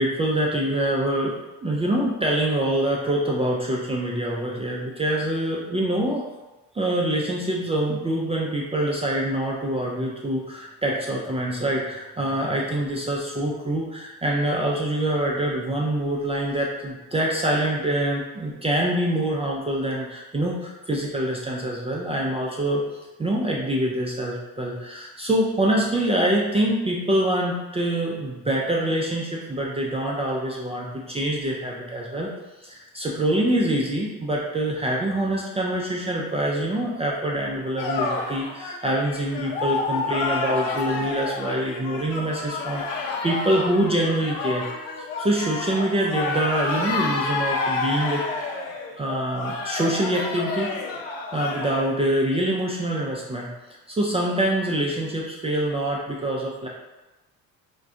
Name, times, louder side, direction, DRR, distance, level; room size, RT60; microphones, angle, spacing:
voice 1, 0.0-1.3 1.6-6.3 6.7-22.8 23.2-32.3 32.6-44.7 45.0-48.5 49.0-50.7 51.3-53.5 53.9-56.7, right 1 dB, 15° right, -3 dB, 0.4 m, -25 dB
sound 1, 37.8-51.9, left 3 dB, 75° left, 0.6 m, -29 dB
2.4 x 2.2 x 3.5 m, 1.1 s
hypercardioid pair, 55°, 43 cm